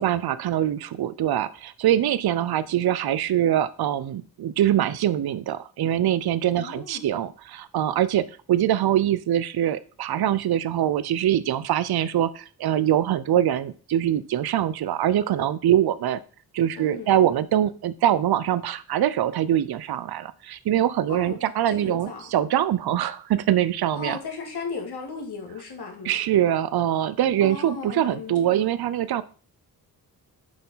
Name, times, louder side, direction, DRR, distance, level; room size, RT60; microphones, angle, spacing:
voice 1, 0.0-16.2 16.5-24.2 26.0-29.2, right 11 dB, 75° right, 0.5 m, -23 dB
voice 2, 6.5-7.0 16.8-17.1 21.1-21.4 21.7-22.3 23.9-26.3 27.4-28.6, left 4 dB, 80° left, 2.0 m, -36 dB
7.6 x 4.5 x 5.5 m
wide cardioid pair, 95°, 38 cm